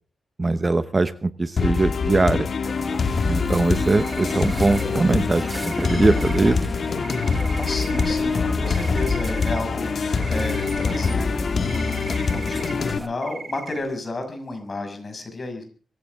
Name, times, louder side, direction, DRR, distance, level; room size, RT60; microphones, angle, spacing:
voice 1, 0.4-2.5 3.3-6.6, right 3 dB, 25° right, 12 dB, 0.9 m, -21 dB
sound 1, 1.6-13.0, left 5 dB, 55° left, 1.8 m, -24 dB
sound 2, 2.6-13.1, right 1 dB, 10° right, 1.2 m, -35 dB
sound 3, 3.9-5.2 5.5-6.4 7.0-8.1 8.5-9.9 10.2-11.1 11.6-12.8 13.2-13.8, right 5 dB, 55° right, 3.8 m, -38 dB
voice 2, 7.3-15.6, left 2 dB, 35° left, 6 dB, 6.3 m, -32 dB
24.0 x 15.0 x 3.6 m, 0.39 s
wide cardioid pair, 135°, 0 cm